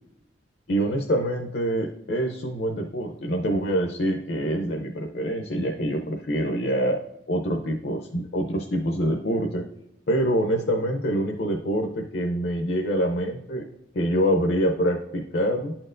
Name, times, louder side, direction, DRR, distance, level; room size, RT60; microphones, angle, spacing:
voice 1, 0.7-7.0 7.3-9.6 10.1-13.6 13.9-15.7, equal, 65° left, 2 dB, 0.6 m, -25 dB
11.5 x 4.4 x 2.5 m, 0.88 s
head